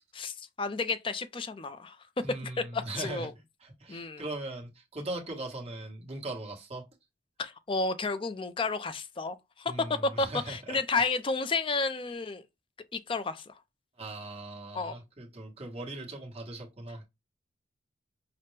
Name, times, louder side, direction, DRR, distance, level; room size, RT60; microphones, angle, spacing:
voice 1, 0.1-2.0 2.7-3.3 3.9-4.2 7.4-12.4 12.9-13.5 14.7-14.9, left 3 dB, 25° left, 0.4 m, -31 dB
voice 2, 2.2-3.3 3.6-6.8 9.6-10.8 14.0-17.0, right 2 dB, 30° right, 1.2 m, -39 dB
5.8 x 2.1 x 3.2 m
head